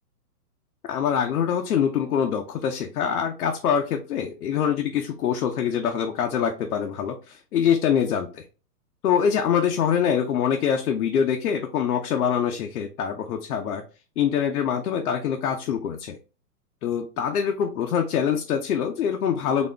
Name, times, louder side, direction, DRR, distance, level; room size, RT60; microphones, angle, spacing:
voice 1, 0.9-8.4 9.0-13.8 14.2-16.2 16.8-19.7, left 8 dB, 65° left, 3 dB, 0.8 m, -24 dB
4.2 x 2.9 x 3.3 m, 0.34 s
hypercardioid pair, 160°, 47 cm